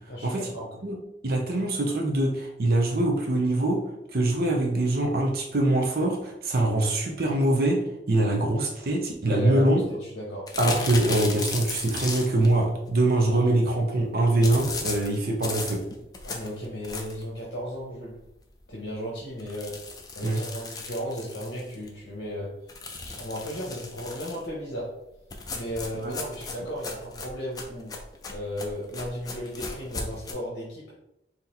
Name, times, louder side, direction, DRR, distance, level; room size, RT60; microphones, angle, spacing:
voice 1, 0.1-0.7 9.3-10.5 16.2-18.2 18.7-22.6 23.0-24.9 25.5-27.9 28.3-30.9, equal, 60° left, -5 dB, 1.1 m, -35 dB
voice 2, 1.2-3.8 4.1-9.8 10.6-15.8 20.2-20.4 26.0-26.1, right 1 dB, 55° right, 1 dB, 0.7 m, -23 dB
sound 1, 10.5-12.5 14.4-17.3 17.8-17.9 18.2-18.3 18.6-18.7 19.4-21.9 22.7-24.5 25.3-30.3, left 3 dB, 20° left, 0.5 m, -36 dB
4.0 x 2.9 x 4.2 m, 0.86 s
head